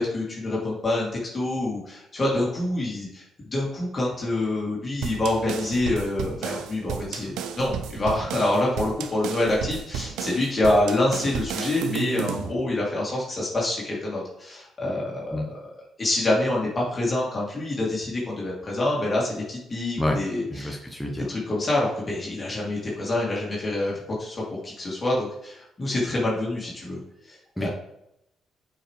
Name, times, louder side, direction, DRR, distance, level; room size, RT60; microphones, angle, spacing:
voice 1, 0.0-3.2 3.5-15.5 16.0-20.8 21.3-27.0 27.3-27.7, left 1 dB, 30° left, -5 dB, 2.6 m, -26 dB
sound 1, 5.0-12.5, right 8 dB, 85° right, 0.6 m, -33 dB
voice 2, 20.5-21.3 27.6-27.7, left 1 dB, 5° left, 0 dB, 0.9 m, -28 dB
8.6 x 5.2 x 3.2 m, 0.82 s
cardioid pair, 90°, 0 cm